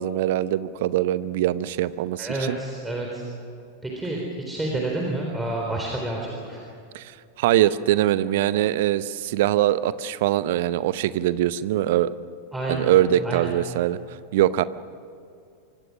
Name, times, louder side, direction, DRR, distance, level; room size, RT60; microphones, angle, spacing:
voice 1, 0.0-2.6 6.9-7.1 7.4-12.1 12.7-14.0 14.3-14.6, right 13 dB, 55° right, 16 dB, 0.8 m, -22 dB
voice 2, 2.2-3.2 3.8-6.6 12.5-13.6, right 2 dB, 5° right, -1 dB, 4.0 m, -29 dB
25.5 x 24.0 x 6.3 m, 2.4 s
figure-of-eight pair, 90°, 0 cm